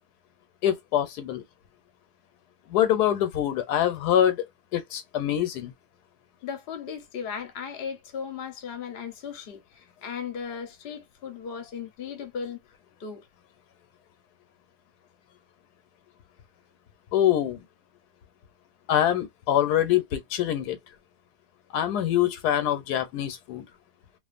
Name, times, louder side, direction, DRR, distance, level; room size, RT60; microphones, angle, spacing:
voice 1, 0.6-1.4 2.7-4.4 4.7-5.7 17.1-17.6 18.9-20.8 21.7-23.7, left 11 dB, 80° left, 1.1 m, -24 dB
voice 2, 6.4-12.6 13.0-13.3, left 6 dB, 50° left, 0.8 m, -36 dB
2.5 x 2.4 x 2.4 m
omnidirectional pair, 1.7 m